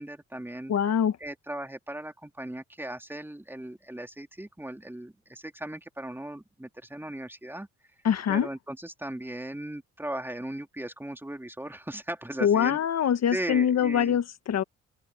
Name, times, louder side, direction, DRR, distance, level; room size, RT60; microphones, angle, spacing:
voice 1, 0.0-0.7 1.2-7.7 8.3-12.8 13.3-14.2, right 1 dB, 5° right, 3.0 m, -37 dB
voice 2, 0.7-1.2 8.0-8.5 12.4-14.6, left 8 dB, 60° left, 1.5 m, -24 dB
cardioid pair, 90°, 30 cm